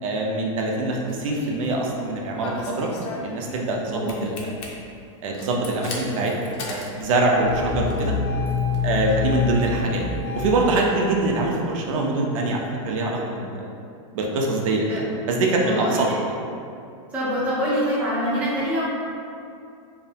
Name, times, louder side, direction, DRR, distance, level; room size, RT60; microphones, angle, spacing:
voice 1, 0.0-2.9 3.2-4.6 5.2-8.1 8.8-10.0 10.3-13.7 14.1-16.1, right 2 dB, 80° right, -1 dB, 0.4 m, -24 dB
Engine starting, 1.1-1.7 2.4-3.8 4.1-4.6 5.3-10.7, left 5 dB, 60° left, 0.5 m, -28 dB
voice 2, 3.9-4.2 9.1-9.3 14.9-15.0 15.6-16.2 17.1-18.8, equal, 10° right, -9 dB, 0.4 m, -25 dB
2.4 x 2.0 x 2.7 m, 2.5 s
supercardioid pair, 160°, 17 cm